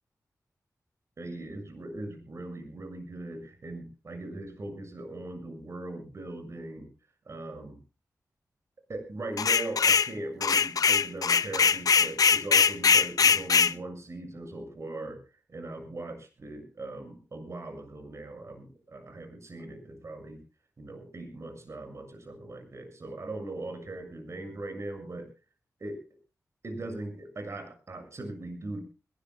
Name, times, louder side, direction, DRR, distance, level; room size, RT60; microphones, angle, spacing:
voice 1, 1.2-6.9 7.2-7.8 8.9-15.2 15.5-20.4 20.8-25.3 25.8-26.0 26.6-28.8, right 2 dB, 45° right, 7 dB, 6.7 m, -40 dB
sound 1, 9.4-10.1 10.4-13.7, left 6 dB, 70° left, 0.7 m, -22 dB
21.5 x 18.5 x 2.3 m, 0.33 s
wide cardioid pair, 140°, 6 cm